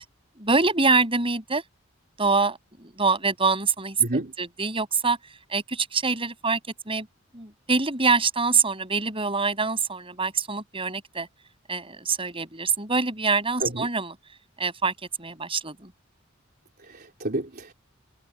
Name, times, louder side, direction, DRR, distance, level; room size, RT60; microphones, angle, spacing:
voice 1, 0.4-1.6 2.2-4.0 4.4-5.2 5.5-6.6 6.9-7.1 7.3-11.3 11.7-14.1 14.6-14.9 15.2-15.9, right 4 dB, 25° right, 7.0 m, -25 dB
voice 2, 4.0-4.3 13.6-13.9 16.8-17.7, right 1 dB, 50° right, 3.6 m, -30 dB
head